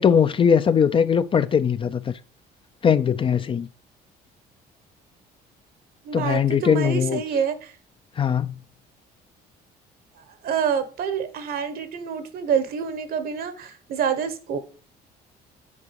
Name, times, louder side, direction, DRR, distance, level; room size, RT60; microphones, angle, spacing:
voice 1, 0.0-2.1 2.8-3.7 6.1-7.2 8.2-8.6, left 7 dB, 30° left, 0.4 m, -20 dB
voice 2, 6.0-7.7 10.2-14.6, right 7 dB, 60° right, 1.1 m, -27 dB
7.4 x 4.7 x 4.6 m
cardioid pair, 110°, 17 cm